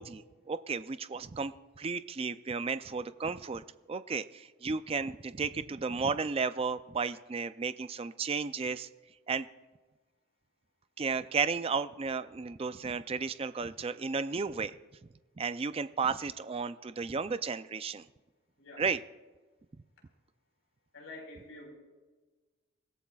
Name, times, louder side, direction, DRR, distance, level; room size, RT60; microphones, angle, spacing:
voice 1, 0.0-8.9 9.3-9.5 11.0-14.8 15.4-18.1 18.8-19.0, right 4 dB, 25° right, 12 dB, 0.4 m, -33 dB
voice 2, 20.9-21.7, left 2 dB, 70° left, 1 dB, 4.6 m, -47 dB
27.0 x 16.0 x 2.4 m, 1.3 s
head